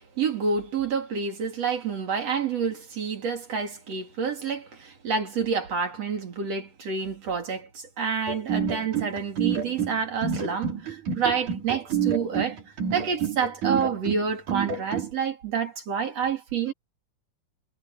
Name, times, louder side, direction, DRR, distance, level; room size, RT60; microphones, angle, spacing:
voice 1, 0.2-12.6 12.9-16.7, right 6 dB, 60° right, 3.7 m, -28 dB
sound 1, 8.3-15.1, right 7 dB, 80° right, 5.5 m, -28 dB
omnidirectional pair, 3.4 m